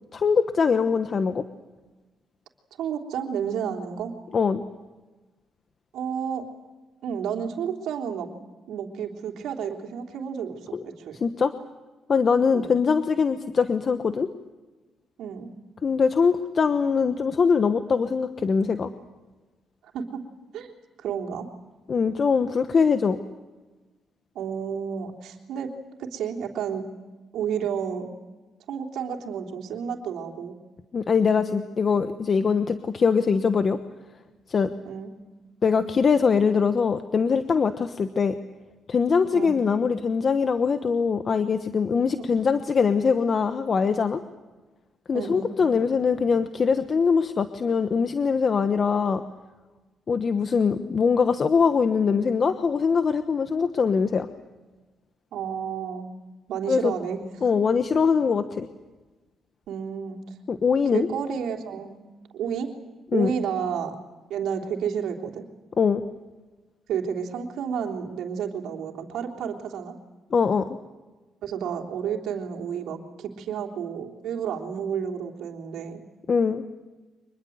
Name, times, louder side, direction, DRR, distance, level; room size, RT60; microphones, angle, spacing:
voice 1, 0.1-1.4 4.3-4.6 10.7-10.8 11.2-11.5 12.1-14.3 15.8-18.9 21.9-23.2 30.9-33.8 34.5-34.7 35.6-38.3 38.9-44.2 45.1-49.2 50.1-54.3 56.7-56.9 57.4-58.7 60.5-61.1 63.1-63.3 65.8-66.0 70.3-70.7 76.3-76.6, left 5 dB, 45° left, 9 dB, 1.2 m, -22 dB
voice 2, 2.8-4.1 5.9-6.5 7.0-8.3 8.7-11.2 12.5-12.7 15.2-15.5 19.9-20.2 20.5-20.7 21.0-21.5 24.3-25.7 26.1-26.8 27.3-28.1 28.7-30.6 34.8-35.1 39.3-39.5 45.1-45.5 55.3-56.1 56.5-57.2 59.7-60.2 60.9-62.0 62.3-62.7 63.1-64.0 64.3-65.4 66.9-69.9 71.4-76.0, right 7 dB, 80° right, 2 dB, 3.4 m, -31 dB
25.5 x 21.5 x 8.0 m, 1.2 s
cardioid pair, 90°, 0 cm